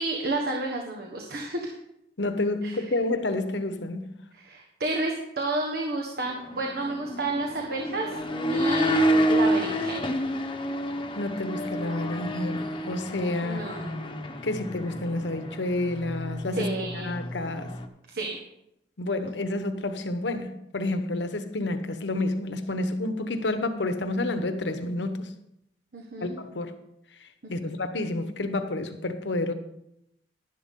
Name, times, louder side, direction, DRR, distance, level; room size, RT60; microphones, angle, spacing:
voice 1, 0.0-1.7 2.6-3.0 4.3-9.0 9.3-10.1 13.4-14.0 16.5-17.1 18.1-18.4 25.9-26.4 27.4-27.8, right 2 dB, 60° right, 1.5 m, -31 dB
voice 2, 2.2-4.1 11.1-13.6 14.4-16.7 16.9-17.8 19.0-25.3 26.2-26.7 27.2-29.5, left 2 dB, 80° left, 1.1 m, -29 dB
sound 1, 6.2-17.9, equal, 30° left, 1.0 m, -29 dB
11.5 x 11.5 x 3.8 m
head